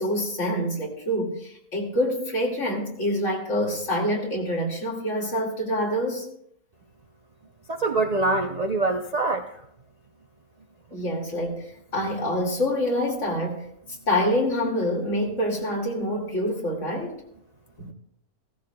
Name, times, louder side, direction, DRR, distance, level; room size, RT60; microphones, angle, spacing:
voice 1, 0.0-6.3 10.9-13.6 14.1-17.1 17.8-17.9, equal, 55° left, 2.5 m, -26 dB
voice 2, 7.7-9.5, right 2 dB, 85° right, 0.3 m, -24 dB
16.0 x 14.5 x 2.2 m
omnidirectional pair, 1.6 m